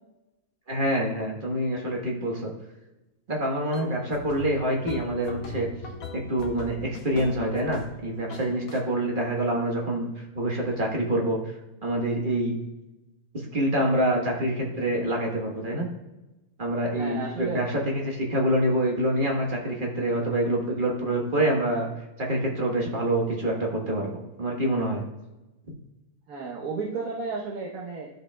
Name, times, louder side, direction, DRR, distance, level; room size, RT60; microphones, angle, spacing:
voice 1, 0.7-2.5 3.3-5.7 6.3-11.6 11.8-12.6 13.5-15.9 16.6-21.9 22.2-25.0, right 1 dB, 35° right, -1 dB, 1.4 m, -26 dB
sound 1, 3.7-8.0 8.3-8.8, left 3 dB, 70° left, 1.3 m, -40 dB
voice 2, 16.9-17.6 26.3-28.1, right 4 dB, 70° right, -2 dB, 1.4 m, -33 dB
12.5 x 5.4 x 2.3 m, 1.0 s
omnidirectional pair, 1.6 m